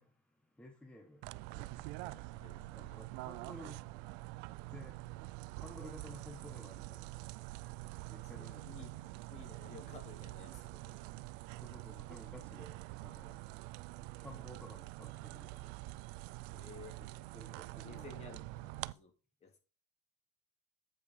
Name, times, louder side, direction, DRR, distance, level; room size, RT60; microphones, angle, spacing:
voice 1, 0.0-8.7 11.6-16.6 17.0-18.1, left 1 dB, 5° left, 1.0 m, -56 dB
sound 1, 1.2-18.9, right 20 dB, 65° right, 0.4 m, -46 dB
voice 2, 2.3-3.0 8.2-9.0 9.3-11.0 16.5-17.0 17.5-19.1 19.4-19.6, left 4 dB, 35° left, 2.5 m, -55 dB
8.6 x 5.2 x 4.8 m
supercardioid pair, 115°, 19 cm